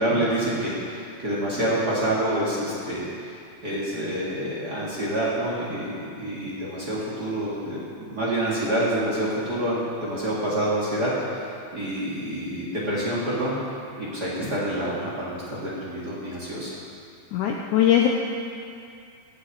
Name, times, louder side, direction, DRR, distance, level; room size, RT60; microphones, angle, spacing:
voice 1, 0.0-3.4 3.6-7.8 8.1-13.5 14.0-16.7, right 1 dB, 35° right, -6 dB, 2.0 m, -27 dB
voice 2, 17.3-18.1, left 11 dB, 80° left, 0 dB, 1.8 m, -20 dB
16.5 x 9.6 x 4.8 m, 2.4 s
omnidirectional pair, 4.3 m